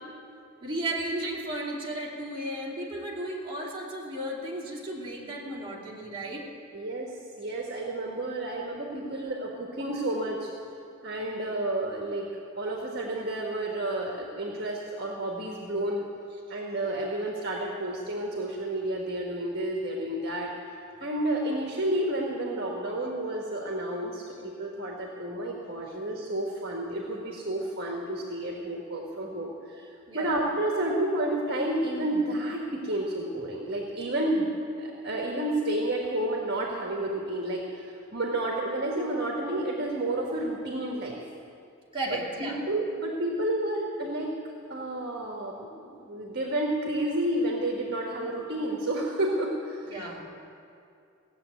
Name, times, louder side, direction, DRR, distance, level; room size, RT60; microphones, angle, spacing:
voice 1, 0.6-6.4 30.1-30.4 41.9-42.6 49.9-50.2, right 1 dB, 25° right, -4 dB, 2.7 m, -34 dB
voice 2, 6.7-7.1 7.4-10.5 11.0-12.3 12.6-16.0 16.5-20.5 21.0-34.5 34.8-41.2 42.1-44.3 44.7-50.1, right 1 dB, 55° right, -1 dB, 1.6 m, -30 dB
16.5 x 7.6 x 9.2 m, 2.5 s
head